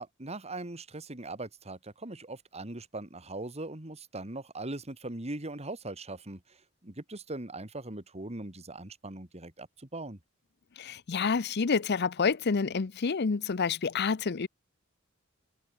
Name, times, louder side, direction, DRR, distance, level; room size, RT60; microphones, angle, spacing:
voice 1, 0.0-6.4 6.8-9.7 9.9-10.2, right 2 dB, 30° right, 2.3 m, -40 dB
voice 2, 10.8-14.5, left 5 dB, 55° left, 0.6 m, -28 dB
head